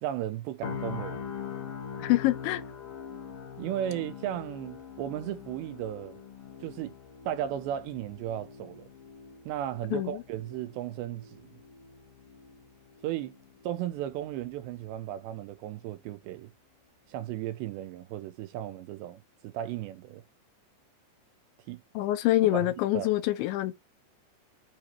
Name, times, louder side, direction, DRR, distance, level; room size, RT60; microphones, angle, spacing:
voice 1, 0.0-1.3 3.6-6.2 6.6-7.0 7.3-8.9 9.5-11.5 13.0-13.4 13.6-16.5 17.1-20.2 21.7-21.8 22.4-22.7 22.9-23.1, right 12 dB, 80° right, 2.8 m, -35 dB
sound 1, 0.6-14.6 15.0-15.2, left 7 dB, 55° left, 3.3 m, -43 dB
voice 2, 2.0-2.6 9.9-10.2 21.9-23.8, left 16 dB, 80° left, 3.2 m, -26 dB
9.2 x 4.8 x 4.4 m
omnidirectional pair, 5.4 m